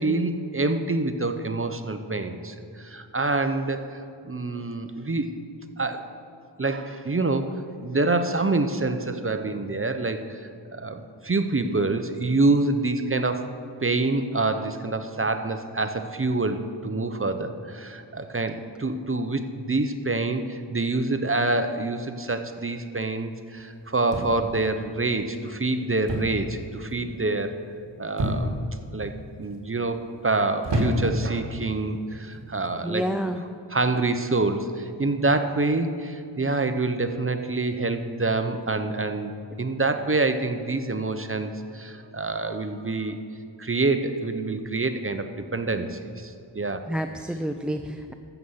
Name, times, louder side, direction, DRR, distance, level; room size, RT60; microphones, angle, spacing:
voice 1, 0.0-5.3 5.8-6.1 6.6-7.5 7.8-13.5 13.8-27.6 28.0-28.6 28.9-29.1 29.4-33.1 33.7-39.3 39.6-43.2 43.6-46.8, right 3 dB, 30° right, 8 dB, 0.7 m, -26 dB
sound 1, 24.1-24.6 26.1-26.5 26.8-27.2 28.2-28.7 29.4-29.8 30.6-31.3 32.2-32.5, equal, 70° right, 1.9 m, -27 dB
voice 2, 32.8-33.4 46.9-48.1, equal, ahead, 7 dB, 0.4 m, -29 dB
13.0 x 7.8 x 5.6 m, 2.5 s
wide cardioid pair, 65°, 43 cm